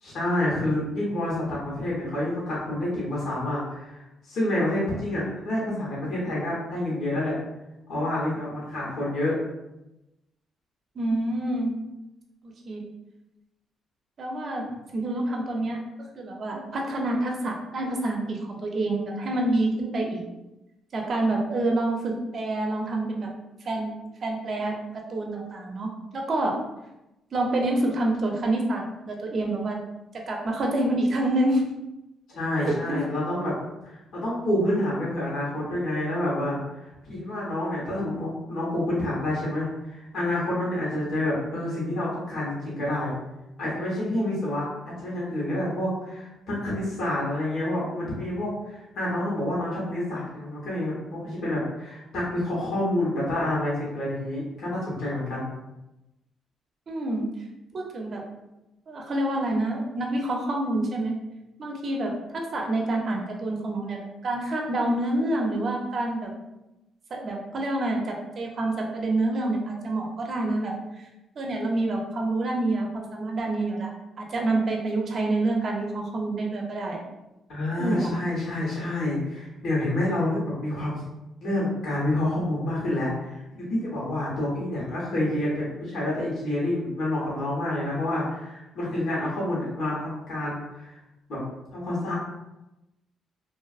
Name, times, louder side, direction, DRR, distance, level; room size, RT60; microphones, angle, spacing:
voice 1, 0.0-4.0 4.3-7.3 7.9-9.4 32.3-33.5 33.8-36.6 37.0-43.1 43.6-55.5 77.5-81.0 81.4-90.9 91.3-91.4 91.7-92.1, left 1 dB, 70° left, -7 dB, 1.1 m, -28 dB
voice 2, 11.0-11.7 12.4-12.8 14.2-14.7 14.9-15.8 16.2-20.2 20.9-23.3 23.6-23.9 24.2-24.7 25.1-26.6 27.3-29.8 30.3-31.6 32.6-33.1 56.9-57.2 57.7-58.2 58.9-61.1 61.6-66.3 67.1-70.7 71.4-73.9 74.2-77.0 77.8-78.2, right 2 dB, 50° right, 0 dB, 0.5 m, -27 dB
2.5 x 2.4 x 2.4 m, 0.96 s
cardioid pair, 90°, 0 cm